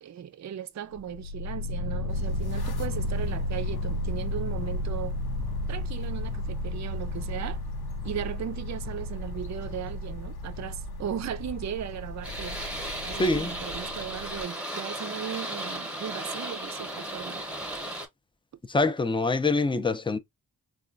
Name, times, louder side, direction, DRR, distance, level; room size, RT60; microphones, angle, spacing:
voice 1, 0.0-5.2 5.7-7.6 8.0-12.6 13.0-17.5, right 9 dB, 50° right, 0.4 m, -37 dB
sound 1, 0.9-14.4, left 2 dB, 65° left, 0.6 m, -33 dB
sound 2, 2.1-13.8, equal, 85° left, 0.9 m, -45 dB
sound 3, 12.2-18.1, right 1 dB, 5° right, 0.9 m, -35 dB
voice 2, 13.2-13.5 18.7-20.2, left 3 dB, 15° left, 0.4 m, -25 dB
4.1 x 2.3 x 2.5 m
wide cardioid pair, 85°, 37 cm